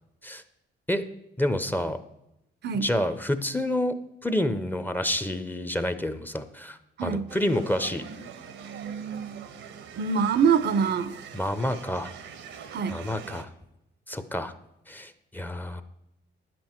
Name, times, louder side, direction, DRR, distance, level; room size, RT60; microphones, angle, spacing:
voice 1, 1.4-2.0 2.7-3.9 4.2-8.0 11.3-12.1 12.9-13.5 14.1-14.5 14.9-15.8, left 1 dB, 10° left, 10 dB, 0.7 m, -28 dB
voice 2, 7.0-7.3 10.0-11.1 12.7-13.0, right 6 dB, 60° right, 14 dB, 0.6 m, -24 dB
sound 1, 7.3-13.4, right 7 dB, 80° right, 0.9 m, -42 dB
10.0 x 7.8 x 4.4 m, 0.87 s
cardioid pair, 90°, 20 cm